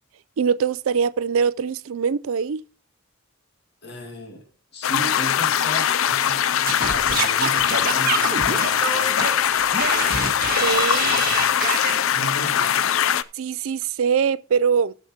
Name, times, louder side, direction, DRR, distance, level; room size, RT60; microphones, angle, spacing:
voice 1, 0.4-2.6 10.6-11.1 13.4-14.9, right 6 dB, 75° right, 0.4 m, -22 dB
voice 2, 3.8-4.4 4.7-9.2 11.1-11.5 12.0-13.0, equal, 50° left, 2.0 m, -35 dB
sound 1, 4.8-13.2, left 9 dB, 70° left, 0.4 m, -21 dB
Singing / Scratching (performance technique), 6.7-12.0, right 4 dB, 45° right, 1.5 m, -26 dB
17.5 x 7.1 x 2.8 m
head